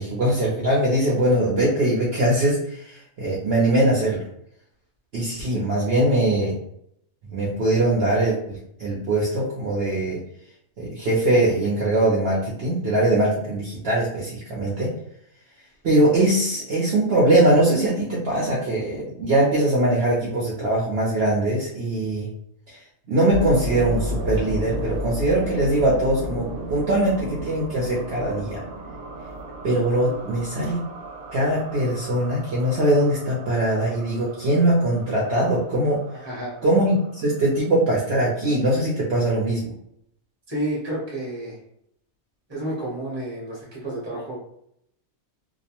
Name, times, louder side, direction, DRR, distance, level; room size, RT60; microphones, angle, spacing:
voice 1, 0.0-4.2 5.1-6.5 7.3-10.2 10.8-14.9 15.8-22.3 22.7-22.8 23.1-28.6 29.6-30.8 31.3-36.0 36.6-39.7, right 1 dB, 55° right, -5 dB, 0.8 m, -21 dB
sound 1, 23.3-37.6, equal, 85° right, 1.1 m, -34 dB
voice 2, 36.2-36.6 40.5-41.6 42.5-44.4, right 1 dB, 20° right, -5 dB, 0.9 m, -30 dB
2.4 x 2.1 x 2.8 m, 0.73 s
omnidirectional pair, 1.5 m